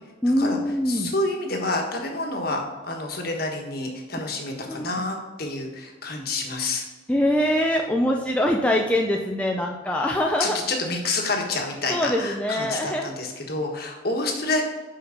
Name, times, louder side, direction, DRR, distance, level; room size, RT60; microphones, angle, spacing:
voice 1, 0.2-1.1 4.7-4.9 7.1-10.6 11.9-13.1, left 1 dB, 5° left, 0 dB, 0.4 m, -23 dB
voice 2, 0.9-6.8 10.4-14.6, left 2 dB, 50° left, 1 dB, 1.4 m, -28 dB
5.9 x 5.8 x 5.0 m, 1.2 s
head